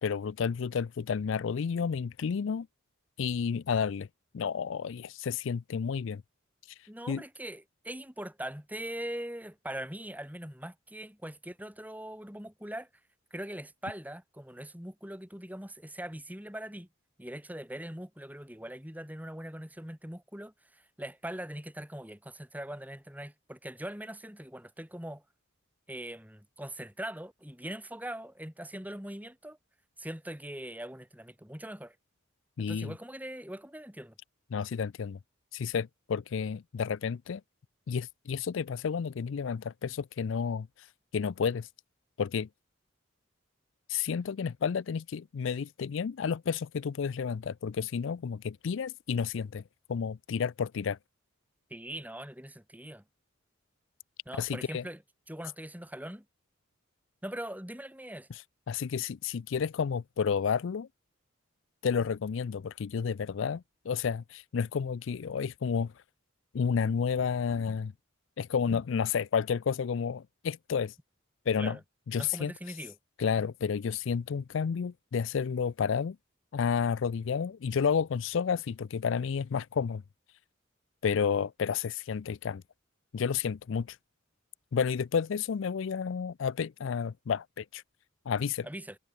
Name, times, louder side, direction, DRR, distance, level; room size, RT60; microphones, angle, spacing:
voice 1, 0.0-2.7 3.2-4.1 4.3-6.2 7.1-7.2 32.6-32.9 34.5-35.2 35.5-37.4 37.9-40.7 41.1-41.7 42.2-42.5 43.9-49.6 49.9-51.0 54.4-54.8 58.7-60.9 61.8-65.9 66.5-67.9 68.4-70.9 71.5-71.8 72.1-72.5 73.2-76.2 76.5-80.0 81.0-82.6 83.1-84.0 84.7-87.8 88.3-88.7, left 6 dB, 65° left, 0.4 m, -31 dB
voice 2, 6.9-12.9 13.3-16.9 17.2-25.2 25.9-29.6 30.0-32.0 32.6-34.1 51.7-53.0 54.3-55.0 55.3-56.2 57.2-58.3 71.6-71.8 72.1-73.0 88.6-89.0, right 1 dB, 10° right, 4.0 m, -41 dB
head